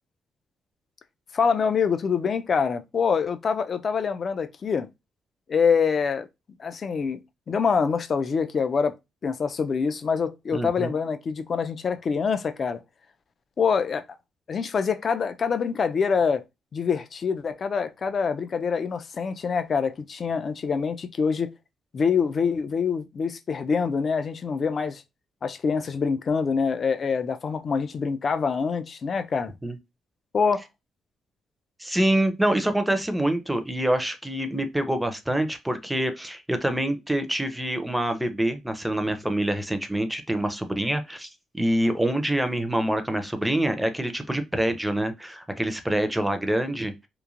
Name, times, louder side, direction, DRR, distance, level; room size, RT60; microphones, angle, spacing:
voice 1, 1.3-4.9 5.5-6.3 6.6-7.2 7.5-8.9 9.2-12.8 13.6-14.0 14.5-16.4 16.7-21.5 21.9-25.0 25.4-29.5 30.3-30.6, left 6 dB, 45° left, 0.4 m, -25 dB
voice 2, 10.5-10.9 29.6-29.8 31.8-46.9, right 1 dB, 5° right, 0.5 m, -26 dB
3.0 x 2.1 x 2.4 m
cardioid pair, 90°, 0 cm